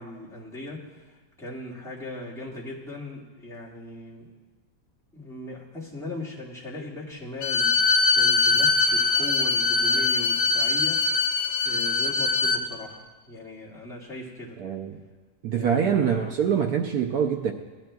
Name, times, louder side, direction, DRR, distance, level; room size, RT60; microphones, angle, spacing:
voice 1, 0.0-4.3 5.1-14.6 15.5-16.2, left 2 dB, ahead, -7 dB, 1.6 m, -39 dB
Bowed string instrument, 7.4-12.6, left 4 dB, 80° left, 1.5 m, -22 dB
voice 2, 14.6-15.0 15.4-17.5, right 7 dB, 70° right, 4 dB, 0.9 m, -24 dB
17.0 x 10.5 x 2.3 m, 1.3 s
omnidirectional pair, 2.1 m